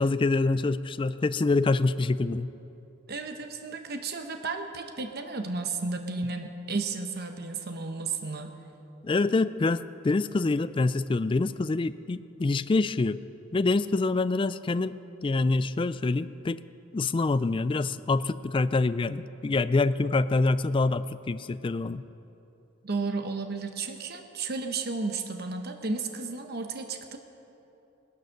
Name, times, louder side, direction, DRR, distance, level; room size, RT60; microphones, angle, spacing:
voice 1, 0.0-2.5 9.0-13.2 13.5-16.6 16.9-22.0, left 3 dB, 25° left, 14 dB, 0.3 m, -26 dB
voice 2, 3.1-8.5 22.8-27.2, right 4 dB, 50° right, 6 dB, 0.9 m, -33 dB
18.5 x 11.0 x 6.4 m, 3.0 s
head